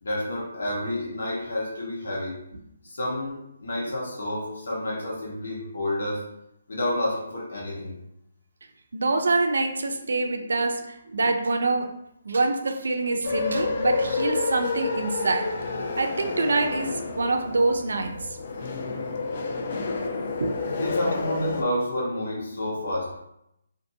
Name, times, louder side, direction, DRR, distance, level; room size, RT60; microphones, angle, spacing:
voice 1, 0.0-2.4 2.8-6.2 6.7-8.0 20.7-23.3, left 1 dB, 65° left, -4 dB, 1.0 m, -29 dB
voice 2, 8.9-11.9 12.2-15.5 16.0-18.3 20.4-20.9, right 3 dB, 75° right, 5 dB, 0.4 m, -25 dB
sound 1, 13.2-21.6, left 4 dB, 35° left, 0.3 m, -29 dB
2.6 x 2.5 x 2.7 m, 0.81 s
hypercardioid pair, 175°, 0 cm